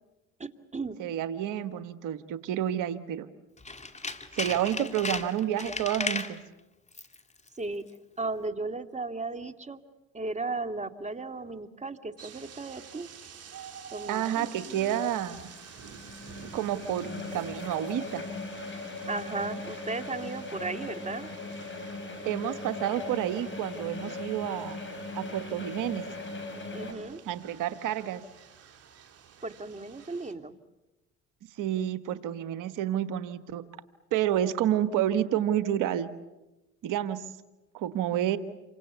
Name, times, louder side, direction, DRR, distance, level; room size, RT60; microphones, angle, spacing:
voice 1, 0.4-1.0 7.6-7.8 8.2-9.8 10.1-13.1 13.9-15.0 19.1-21.3 26.7-27.2 29.4-30.5, right 3 dB, 20° right, 9 dB, 2.3 m, -35 dB
voice 2, 1.0-3.3 4.3-6.4 14.1-15.5 16.5-18.2 22.2-24.8 25.1-26.0 27.2-28.2 31.6-33.6 34.1-36.1 36.8-37.2 37.7-38.4, right 11 dB, 70° right, 12 dB, 1.5 m, -29 dB
Tools, 3.6-6.4 6.9-7.2 7.5-7.6, left 3 dB, 20° left, 2.7 m, -35 dB
sound 1, 12.2-30.3, right 8 dB, 50° right, 3.6 m, -50 dB
sound 2, 14.7-26.9, left 2 dB, 35° left, 7.0 m, -39 dB
29.0 x 25.0 x 8.2 m, 1.0 s
supercardioid pair, 65°, 32 cm